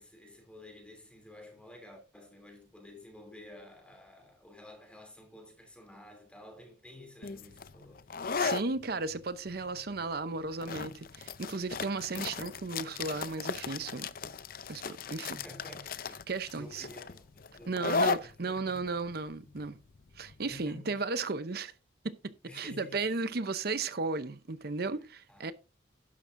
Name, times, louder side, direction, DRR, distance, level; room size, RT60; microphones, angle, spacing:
voice 1, 0.0-8.1 15.4-16.2 16.5-19.0 20.4-21.0 22.4-23.0 25.3-25.5, left 1 dB, 5° left, 3.0 m, -51 dB
sound 1, 7.2-20.6, left 5 dB, 50° left, 0.6 m, -36 dB
voice 2, 8.4-14.1 14.7-15.4 16.3-16.9 17.7-19.8 20.2-21.7 22.0-25.5, right 3 dB, 55° right, 0.7 m, -35 dB
12.0 x 10.5 x 2.6 m
head